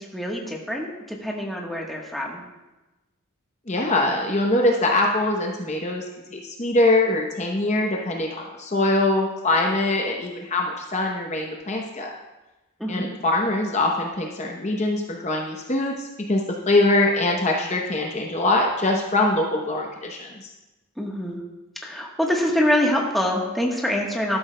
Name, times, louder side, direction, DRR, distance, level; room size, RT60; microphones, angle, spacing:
voice 1, 0.0-2.4 12.8-13.1 21.0-21.4 21.8-24.4, left 1 dB, ahead, -2 dB, 1.2 m, -25 dB
voice 2, 3.7-6.1 6.3-12.1 12.9-20.5, left 2 dB, 30° left, 0 dB, 0.8 m, -23 dB
12.5 x 12.5 x 2.2 m, 1.1 s
head